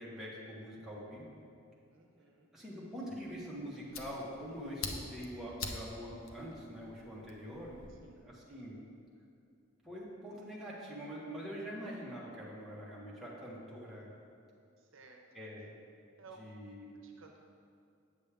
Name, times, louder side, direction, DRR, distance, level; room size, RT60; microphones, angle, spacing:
voice 1, 0.0-1.4 2.5-8.8 9.8-14.1 15.3-15.7 16.4-16.9, equal, ahead, -7 dB, 1.3 m, -44 dB
voice 2, 1.9-2.5 7.9-8.4 14.8-15.4 16.2-16.5 17.0-17.4, right 3 dB, 70° right, 2 dB, 0.8 m, -57 dB
Fire, 3.3-7.9, left 4 dB, 80° left, 0.7 m, -46 dB
8.5 x 6.6 x 3.4 m, 2.4 s
head